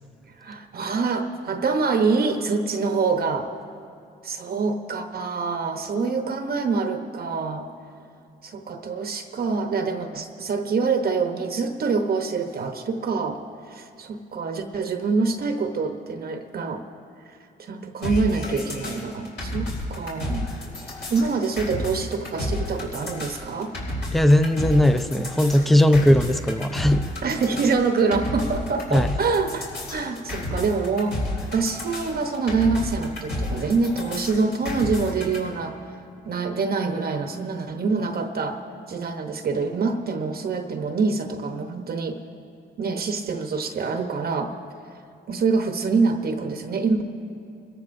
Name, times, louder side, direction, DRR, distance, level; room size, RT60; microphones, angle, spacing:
voice 1, 0.4-3.5 4.2-7.7 8.4-13.4 13.7-16.8 17.6-20.5 21.1-23.7 27.2-29.6 29.9-31.2 31.5-35.8 36.2-38.6 38.9-42.2 42.8-44.5 45.3-47.0, right 4 dB, 50° right, 6 dB, 0.9 m, -25 dB
sound 1, 18.0-35.4, left 1 dB, 60° left, 4.0 m, -31 dB
voice 2, 24.1-27.1 28.9-29.1, left 1 dB, ahead, 10 dB, 0.5 m, -18 dB
25.0 x 14.0 x 2.6 m, 2.5 s
cardioid pair, 90°, 20 cm